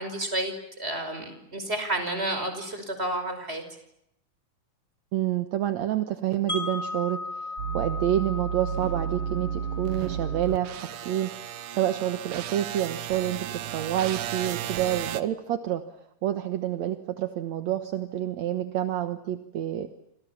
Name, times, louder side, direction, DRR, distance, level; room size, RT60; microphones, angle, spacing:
voice 1, 0.0-3.6, right 1 dB, 20° right, 8 dB, 5.4 m, -31 dB
voice 2, 5.1-7.5 7.7-15.8 16.2-19.9, right 12 dB, 65° right, 8 dB, 2.4 m, -28 dB
Wind chime, 6.5-12.5, left 3 dB, 25° left, 6.7 m, -38 dB
sound 1, 7.6-15.2, right 9 dB, 80° right, 2.7 m, -33 dB
29.0 x 27.5 x 7.3 m, 0.80 s
omnidirectional pair, 3.5 m